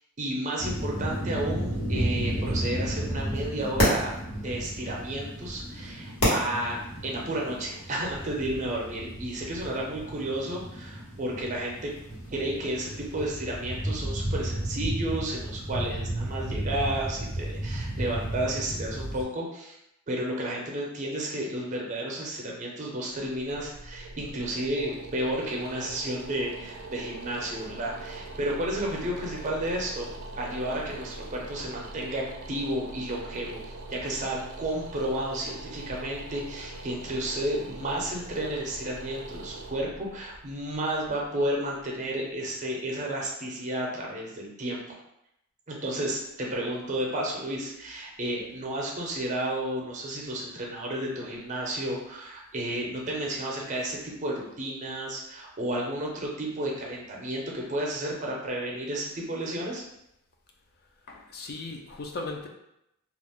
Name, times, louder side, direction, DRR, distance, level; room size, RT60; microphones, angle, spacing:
voice 1, 0.2-4.1 4.4-11.9 12.3-19.8 20.1-30.1 30.4-33.6 33.9-44.8 45.7-59.8, right 1 dB, 35° right, -2 dB, 0.6 m, -32 dB
sound 1, 0.6-19.2, equal, 80° left, 1.1 m, -32 dB
sound 2, 23.1-42.0, right 2 dB, 85° right, 0.4 m, -42 dB
voice 2, 61.1-62.5, left 3 dB, 50° left, 2 dB, 0.4 m, -37 dB
2.4 x 2.0 x 3.5 m, 0.81 s
head